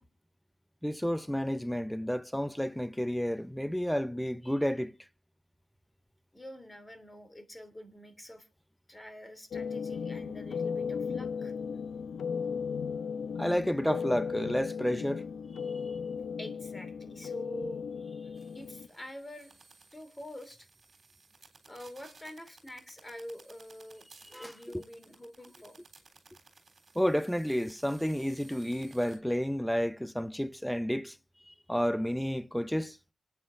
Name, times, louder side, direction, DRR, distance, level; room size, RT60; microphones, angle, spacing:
voice 1, 0.8-4.9 13.4-15.2 24.3-24.5 26.9-31.2 31.5-33.0, equal, 5° left, 0.6 m, -31 dB
voice 2, 6.3-8.5 8.9-11.5 16.4-17.8 18.5-19.5 19.9-20.7 21.7-24.1 24.4-25.8, left 1 dB, 20° left, 3.2 m, -46 dB
sound 1, 9.5-18.9, left 6 dB, 85° left, 0.6 m, -36 dB
sound 2, 18.4-29.2, right 3 dB, 50° right, 3.5 m, -59 dB
26.0 x 9.3 x 2.6 m
cardioid pair, 55°, 0 cm